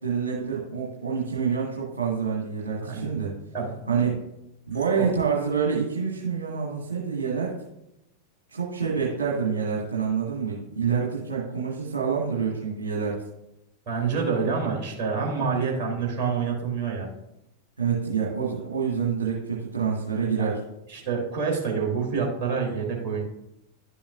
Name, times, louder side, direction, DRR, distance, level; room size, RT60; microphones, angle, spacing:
voice 1, 0.0-3.3 3.9-4.2 4.7-7.5 8.5-13.1 17.8-20.6, right 6 dB, 75° right, -4 dB, 1.7 m, -27 dB
voice 2, 2.8-3.1 3.5-3.7 4.9-5.1 13.9-17.1 20.4-20.5 20.9-23.2, right 5 dB, 40° right, -2 dB, 3.2 m, -27 dB
11.0 x 7.1 x 2.5 m, 0.84 s
figure-of-eight pair, 90°, 0 cm